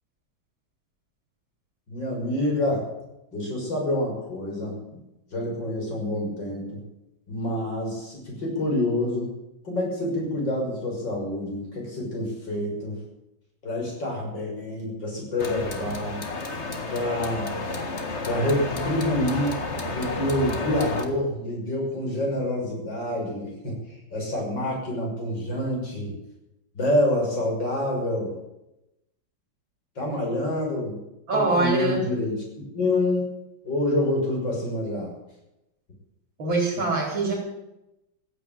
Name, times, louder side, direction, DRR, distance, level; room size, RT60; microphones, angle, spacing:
voice 1, 1.9-2.9 3.3-4.7 5.3-6.8 7.3-9.3 9.6-13.0 13.6-16.2 16.9-17.5 18.2-19.6 19.9-23.8 24.1-26.1 26.8-28.3 30.0-31.0 31.3-33.3 33.6-35.1, left 1 dB, 65° left, -2 dB, 7.0 m, -27 dB
sound 1, 15.4-21.1, left 2 dB, 35° left, 1.8 m, -31 dB
voice 2, 31.3-32.0 36.4-37.3, right 3 dB, 75° right, -5 dB, 4.8 m, -23 dB
15.5 x 9.3 x 9.1 m, 0.91 s
omnidirectional pair, 2.1 m